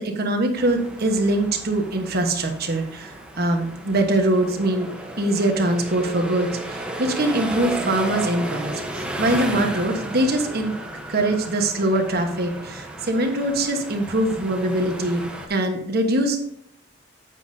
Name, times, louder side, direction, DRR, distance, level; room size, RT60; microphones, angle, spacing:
voice 1, 0.0-4.9 5.2-10.7 11.1-15.2 15.5-16.4, right 1 dB, 55° right, 4 dB, 1.3 m, -23 dB
sound 1, 0.6-15.5, right 1 dB, 5° right, 1.0 m, -34 dB
9.0 x 8.5 x 2.8 m, 0.73 s
head